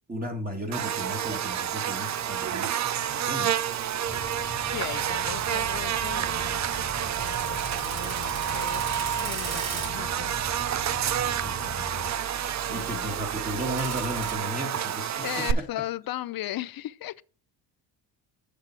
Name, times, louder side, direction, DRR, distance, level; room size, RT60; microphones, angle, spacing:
voice 1, 0.1-2.7 3.1-3.6 11.4-11.8 12.7-15.6, equal, 20° right, 1.7 m, -35 dB
Buzz, 0.7-15.5, right 10 dB, 40° right, 0.6 m, -29 dB
sound 1, 4.0-12.1, left 4 dB, 15° left, 0.7 m, -42 dB
voice 2, 4.7-6.9 7.2-10.6 12.7-13.1 15.2-17.2, left 14 dB, 50° left, 0.6 m, -37 dB
sound 2, 5.5-14.4, right 6 dB, 75° right, 4.1 m, -40 dB
6.9 x 6.5 x 4.4 m
cardioid pair, 85°, 45 cm